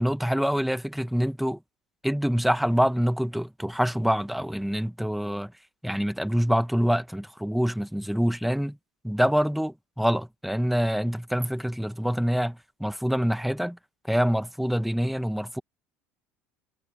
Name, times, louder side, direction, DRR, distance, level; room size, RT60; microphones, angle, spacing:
voice 1, 0.0-1.6 2.0-5.5 5.8-8.8 9.0-13.8 14.1-15.6, equal, ahead, 1.5 m, -26 dB
hypercardioid pair, 80°, 7 cm